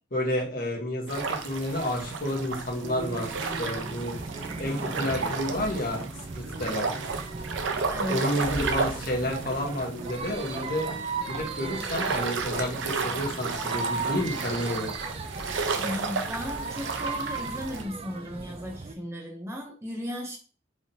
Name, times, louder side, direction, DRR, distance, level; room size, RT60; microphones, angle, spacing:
voice 1, 0.1-4.1 4.6-6.0 6.3-6.9 8.1-10.9 11.3-14.9, left 1 dB, 50° left, -1 dB, 1.3 m, -30 dB
sound 1, 1.1-17.8, right 4 dB, 80° right, 0.6 m, -33 dB
sound 2, 2.8-18.9, right 3 dB, 30° right, 0.4 m, -37 dB
voice 2, 7.9-8.7 15.8-20.4, left 1 dB, 15° right, 0 dB, 0.7 m, -36 dB
4.8 x 3.6 x 2.8 m, 0.36 s
head